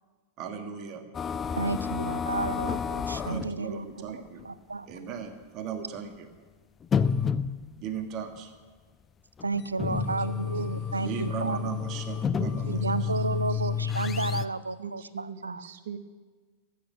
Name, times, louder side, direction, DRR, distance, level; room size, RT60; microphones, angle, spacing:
voice 1, 0.4-1.0 3.2-4.4 4.9-6.3 7.8-8.5 11.0-12.9, right 7 dB, 40° right, 7 dB, 1.6 m, -37 dB
sound 1, 1.1-3.6 4.4-4.5 4.9-5.0 5.9-6.0 6.8-7.9 9.4-14.5, left 7 dB, 20° left, 0.4 m, -30 dB
voice 2, 1.5-3.9 4.4-4.9 9.4-11.6 12.7-15.0 15.4-15.6, right 3 dB, 80° right, 17 dB, 0.4 m, -31 dB
voice 3, 9.8-11.2 12.4-13.7 14.6-16.0, right 6 dB, 55° right, 9 dB, 0.9 m, -43 dB
15.0 x 8.6 x 6.2 m, 1.4 s
figure-of-eight pair, 90°, 0 cm